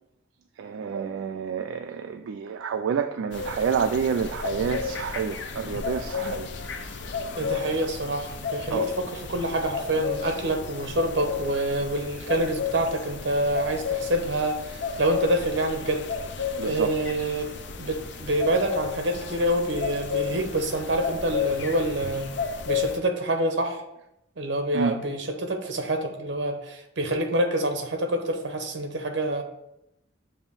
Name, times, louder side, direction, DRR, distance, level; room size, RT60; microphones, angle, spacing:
voice 1, 0.6-6.5 8.7-8.9 16.6-16.9 24.7-25.0, right 6 dB, 80° right, 0.3 m, -28 dB
sound 1, 3.3-23.0, left 6 dB, 65° left, 0.5 m, -33 dB
voice 2, 7.4-16.0 16.6-17.5 17.8-22.3 22.7-23.8 24.4-29.4, right 1 dB, 65° right, 0.8 m, -27 dB
7.0 x 2.6 x 5.4 m
head